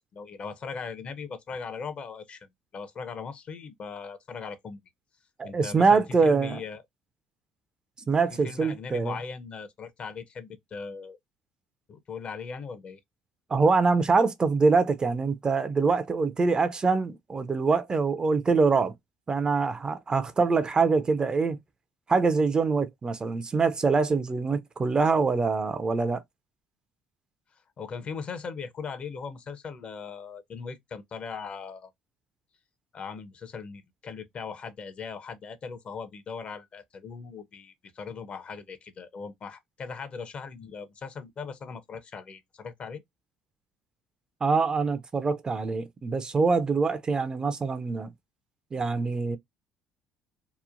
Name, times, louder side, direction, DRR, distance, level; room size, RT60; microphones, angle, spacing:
voice 1, 0.0-4.8 5.4-6.8 8.4-11.2 11.9-13.0 27.8-31.9 32.9-43.0, left 5 dB, 45° left, 0.6 m, -39 dB
voice 2, 5.4-6.6 8.1-9.2 13.5-18.9 19.3-21.6 22.1-26.2 44.4-48.1 48.7-49.4, right 4 dB, 30° right, 0.5 m, -24 dB
2.9 x 2.1 x 2.4 m
supercardioid pair, 75°, 3 cm